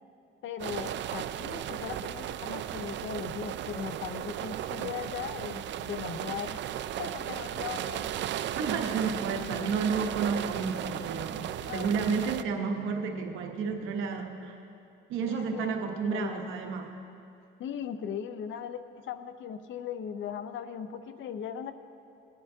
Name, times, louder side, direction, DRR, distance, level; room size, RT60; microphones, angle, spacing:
voice 1, 0.4-6.6 7.0-8.1 11.6-11.9 15.3-16.5 17.6-21.7, left 8 dB, 75° left, 11 dB, 0.6 m, -38 dB
Rain on Car Windshield, 0.6-12.4, right 11 dB, 65° right, 0.4 m, -35 dB
voice 2, 8.6-14.6 15.1-17.0, right 5 dB, 85° right, 3 dB, 1.1 m, -31 dB
20.0 x 10.5 x 2.8 m, 2.6 s
cardioid pair, 90°, 20 cm